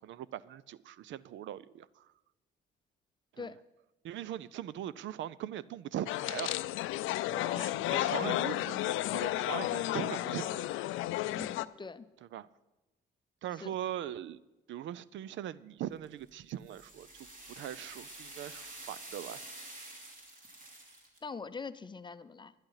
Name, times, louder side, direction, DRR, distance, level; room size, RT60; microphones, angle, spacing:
voice 1, 0.0-2.1 3.3-3.5 4.0-6.6 7.5-10.7 12.3-12.5 13.4-14.4 14.7-17.1 17.4-19.4, right 11 dB, 75° right, 0.5 m, -40 dB
sound 1, 6.1-11.7, left 15 dB, 90° left, 0.4 m, -33 dB
voice 2, 7.2-8.0 11.3-12.1 13.6-13.7 21.2-22.5, left 4 dB, 25° left, 0.6 m, -43 dB
sound 2, 16.0-21.2, right 2 dB, 45° right, 3.0 m, -48 dB
11.5 x 10.5 x 5.7 m
cardioid pair, 90°, 20 cm